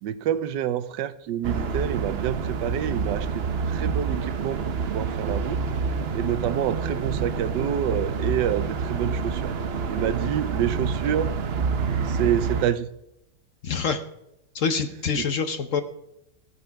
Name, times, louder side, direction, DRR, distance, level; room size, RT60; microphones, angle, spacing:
voice 1, 0.0-3.4 3.7-5.6 6.1-9.5 9.9-11.3 12.1-12.9 15.2-15.3, right 10 dB, 80° right, 14 dB, 1.3 m, -27 dB
sound 1, 1.4-12.6, right 5 dB, 50° right, 0.8 m, -28 dB
voice 2, 13.6-14.0 14.5-15.8, left 5 dB, 55° left, 9 dB, 1.0 m, -26 dB
16.0 x 9.6 x 5.8 m, 0.84 s
omnidirectional pair, 1.9 m